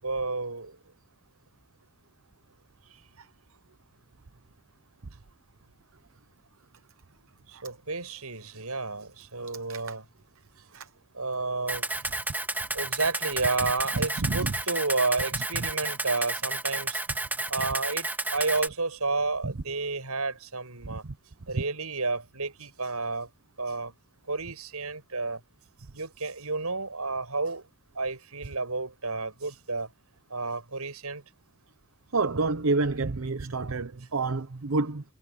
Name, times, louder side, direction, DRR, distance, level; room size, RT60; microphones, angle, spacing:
voice 1, 0.0-0.8 2.9-3.0 7.5-10.1 11.1-11.9 12.7-17.0 17.5-21.0 21.5-23.3 23.6-23.9 24.3-25.4 25.9-27.6 27.9-29.9 30.3-31.2, right 3 dB, 85° right, 7.5 m, -31 dB
Camera, 11.7-18.7, right 2 dB, 10° right, 2.7 m, -31 dB
voice 2, 14.2-14.5 19.4-19.5 20.9-21.0 32.1-35.0, right 3 dB, 65° right, 0.8 m, -28 dB
head